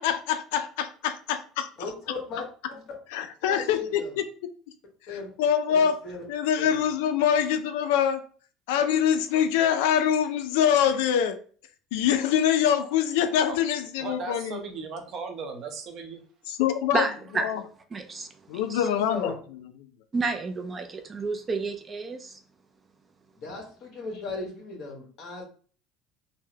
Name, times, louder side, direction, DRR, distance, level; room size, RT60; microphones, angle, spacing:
voice 1, 0.0-1.7 3.1-4.3 5.1-6.0 6.3-8.2 8.7-11.4 11.9-14.6 16.5-17.1 17.3-17.6 18.5-19.3, left 9 dB, 90° left, 0.3 m, -24 dB
voice 2, 1.8-2.4 2.7-2.8 3.5-4.1 5.1-5.3 5.7-6.2 6.6-6.8 18.8-19.3 23.3-25.4, left 3 dB, 50° left, 1.4 m, -37 dB
voice 3, 14.0-16.5, right 5 dB, 50° right, 0.7 m, -37 dB
voice 4, 16.9-17.5 17.9-18.9 20.1-22.4, right 3 dB, 25° right, 0.4 m, -30 dB
3.7 x 2.0 x 2.7 m
cardioid pair, 130°, 0 cm